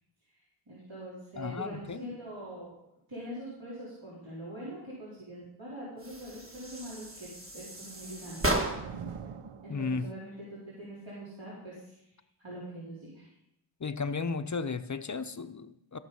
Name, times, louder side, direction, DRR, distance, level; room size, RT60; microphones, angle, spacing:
voice 1, 0.3-2.8 3.1-8.7 9.6-12.1 12.4-13.3, right 1 dB, 65° right, -8 dB, 4.1 m, -43 dB
voice 2, 1.4-2.1 9.7-10.1 13.8-16.0, left 4 dB, 35° left, 10 dB, 0.6 m, -34 dB
sound 1, 6.0-9.1, right 1 dB, 25° right, 1.6 m, -34 dB
sound 2, 7.6-10.5, right 6 dB, 90° right, 0.8 m, -45 dB
15.5 x 6.7 x 5.5 m, 0.80 s
wide cardioid pair, 85°, 49 cm